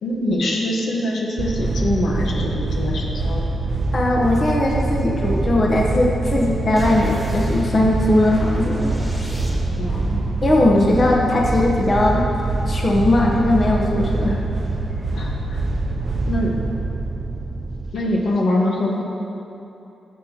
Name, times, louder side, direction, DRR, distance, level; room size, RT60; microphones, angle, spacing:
voice 1, 0.0-3.5 9.7-10.2 10.7-10.9 15.1-15.6 16.3-16.5 17.9-19.0, left 1 dB, 75° left, -1 dB, 1.2 m, -23 dB
sound 1, 1.4-17.9, right 2 dB, 45° right, 0.5 m, -24 dB
voice 2, 3.9-8.9 10.4-12.3 12.7-14.4, left 1 dB, 40° left, -2 dB, 1.0 m, -19 dB
sound 2, 6.8-10.0, equal, 10° left, 2.0 m, -35 dB
14.0 x 7.4 x 2.9 m, 2.9 s
cardioid pair, 100°, 0 cm